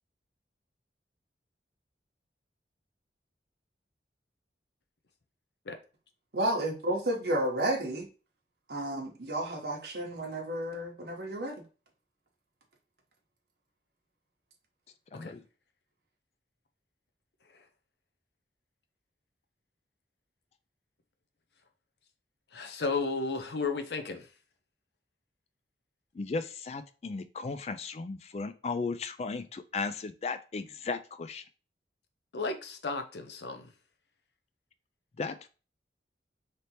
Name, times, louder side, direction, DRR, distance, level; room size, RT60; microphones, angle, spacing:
voice 1, 6.3-8.1 8.7-11.6, right 1 dB, 65° right, 1.0 m, -32 dB
voice 2, 15.1-15.4 26.1-31.4 35.2-35.5, left 4 dB, 35° left, 0.3 m, -36 dB
voice 3, 22.5-24.3 32.3-33.7, left 4 dB, 70° left, 0.6 m, -33 dB
3.3 x 2.8 x 4.2 m
head